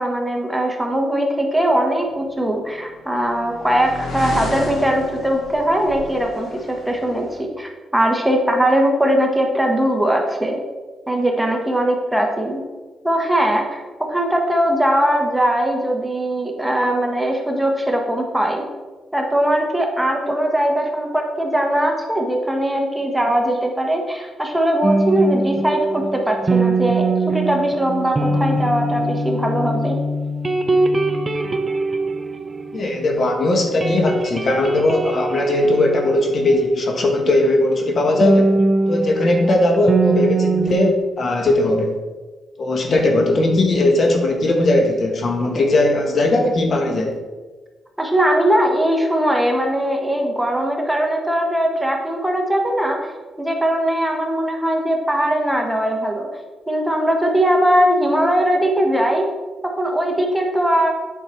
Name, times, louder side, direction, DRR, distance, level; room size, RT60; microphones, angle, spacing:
voice 1, 0.0-10.6 11.1-12.6 13.0-13.8 14.1-18.7 19.1-30.0 48.0-53.1 53.4-56.3 56.7-59.3 59.8-60.9, right 1 dB, 5° right, 1 dB, 1.3 m, -20 dB
sound 1, 2.5-7.4, left 2 dB, 75° left, 2.0 m, -32 dB
sound 2, 24.8-33.3 33.6-37.0 38.2-40.9, right 2 dB, 25° right, 0.6 m, -22 dB
voice 2, 32.7-38.5 38.9-42.0 42.6-47.1, left 2 dB, 50° left, 3 dB, 1.3 m, -18 dB
8.4 x 5.8 x 4.5 m, 1.3 s
cardioid pair, 100°, 0 cm